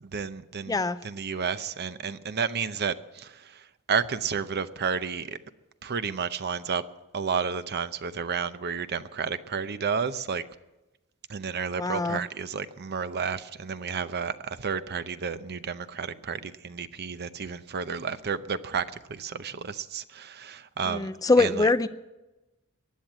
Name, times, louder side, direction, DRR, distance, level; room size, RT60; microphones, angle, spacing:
voice 1, 0.0-5.4 5.8-6.8 7.1-10.4 11.3-21.1 21.4-21.7, right 6 dB, 50° right, 13 dB, 0.7 m, -31 dB
voice 2, 11.8-12.2 20.9-21.9, left 3 dB, 15° left, 13 dB, 0.5 m, -23 dB
15.5 x 10.5 x 7.4 m, 1.0 s
head